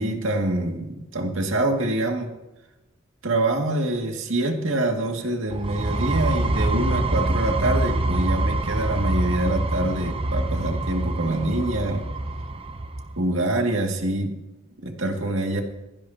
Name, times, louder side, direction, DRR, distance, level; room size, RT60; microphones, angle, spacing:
voice 1, 0.0-2.3 3.2-12.1 13.2-14.3 14.8-15.6, right 1 dB, 70° right, 2 dB, 2.2 m, -25 dB
sound 1, 5.5-13.1, right 2 dB, 25° right, 0.7 m, -25 dB
22.0 x 15.5 x 2.9 m, 1.0 s
head